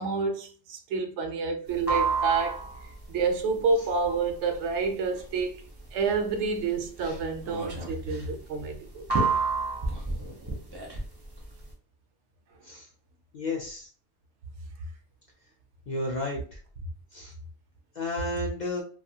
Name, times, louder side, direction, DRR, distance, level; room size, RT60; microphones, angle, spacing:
voice 1, 0.0-2.7 3.1-5.6 5.9-9.1, right 4 dB, 80° right, 0.9 m, -28 dB
sound 1, 1.7-11.7, right 4 dB, 30° right, 0.5 m, -31 dB
voice 2, 13.3-13.9 15.9-16.4 17.1-17.3 18.0-18.8, left 2 dB, 60° left, 0.5 m, -32 dB
2.6 x 2.3 x 2.7 m
omnidirectional pair, 1.2 m